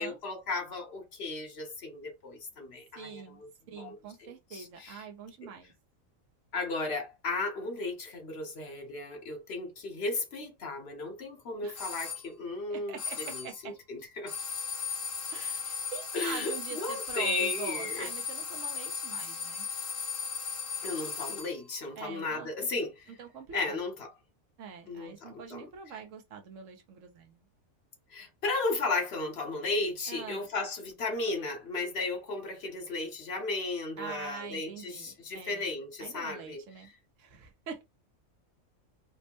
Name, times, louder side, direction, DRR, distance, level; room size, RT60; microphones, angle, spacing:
voice 1, 0.0-3.5 3.8-5.1 6.5-14.3 16.1-18.1 20.8-23.1 23.5-24.1 24.9-25.7 28.1-36.6, left 3 dB, 55° left, 1.1 m, -35 dB
voice 2, 2.9-3.4 3.7-5.7 11.6-11.8 12.7-13.7 15.3-19.7 22.0-22.7 23.2-23.8 24.6-27.4 30.1-30.5 34.0-35.7 36.0-36.9 37.2-37.8, right 6 dB, 70° right, 1.2 m, -44 dB
sound 1, 11.8-12.3 13.0-13.6 14.3-21.6, left 5 dB, 75° left, 1.3 m, -37 dB
4.3 x 2.1 x 2.9 m
omnidirectional pair, 1.4 m